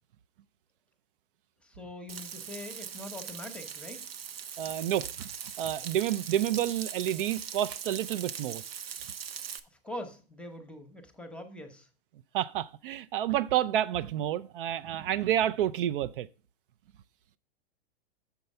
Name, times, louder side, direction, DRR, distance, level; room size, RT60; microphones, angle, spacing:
voice 1, 1.6-4.0 9.8-11.9, left 1 dB, 5° left, 0.8 m, -43 dB
Frying (food), 2.1-9.6, right 8 dB, 85° right, 0.8 m, -41 dB
voice 2, 4.6-5.3 5.6-8.6 12.3-16.3, right 11 dB, 65° right, 0.4 m, -29 dB
6.9 x 4.5 x 5.3 m
hypercardioid pair, 135°, 29 cm